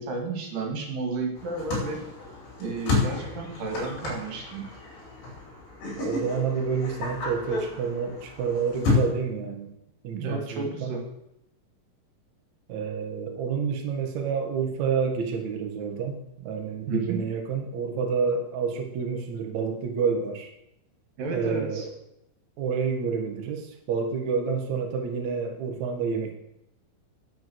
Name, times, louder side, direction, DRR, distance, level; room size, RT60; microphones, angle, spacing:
voice 1, 0.0-2.0 2.6-4.7 10.1-11.0 15.8-16.0 16.9-17.2 21.2-21.9, right 3 dB, 50° right, 1 dB, 3.3 m, -32 dB
sound 1, 1.4-9.0, left 3 dB, 55° left, 6.4 m, -31 dB
voice 2, 6.0-9.7 10.0-10.9 12.7-20.5 21.3-21.9 22.6-26.4, right 6 dB, 80° right, 4 dB, 1.6 m, -29 dB
10.5 x 7.3 x 8.0 m, 0.83 s
omnidirectional pair, 5.9 m